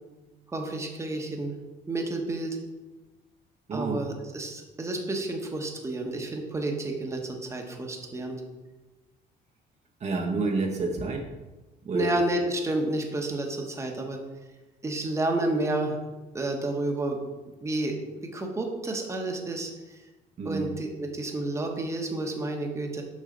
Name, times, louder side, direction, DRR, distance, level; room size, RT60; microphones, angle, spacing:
voice 1, 0.5-1.5 1.9-2.6 3.7-8.4 11.9-14.2 14.8-16.0 16.3-17.2 17.6-17.9 18.3-20.0 20.4-23.0, right 2 dB, 15° right, 2 dB, 1.0 m, -30 dB
voice 2, 3.7-4.0 10.0-11.3 11.8-12.2 20.4-20.7, right 3 dB, 40° right, 1 dB, 0.9 m, -29 dB
6.4 x 5.5 x 3.9 m, 1.1 s
cardioid pair, 110°, 17 cm